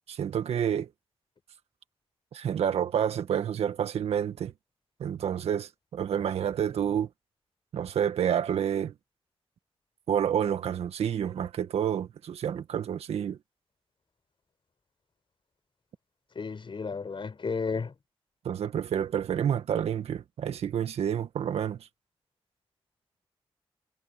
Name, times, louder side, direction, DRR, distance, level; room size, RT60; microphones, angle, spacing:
voice 1, 0.1-0.9 2.3-4.5 5.0-7.1 7.7-8.9 10.1-13.4 18.4-21.8, right 9 dB, 90° right, 1.8 m, -29 dB
voice 2, 16.3-17.9, left 5 dB, 55° left, 5.0 m, -33 dB
cardioid pair, 55°, 10 cm